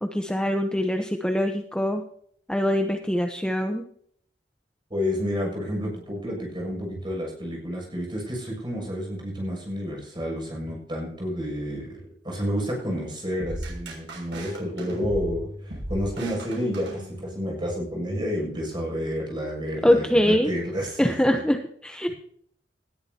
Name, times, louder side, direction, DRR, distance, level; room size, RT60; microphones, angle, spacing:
voice 1, 0.0-2.0 2.5-3.8 19.8-20.5 21.0-22.1, equal, 5° left, 4 dB, 0.8 m, -23 dB
voice 2, 4.9-21.4, equal, 25° right, -1 dB, 7.1 m, -30 dB
sound 1, 13.4-17.6, right 1 dB, 85° right, 6.4 m, -36 dB
19.5 x 13.5 x 2.9 m, 0.64 s
head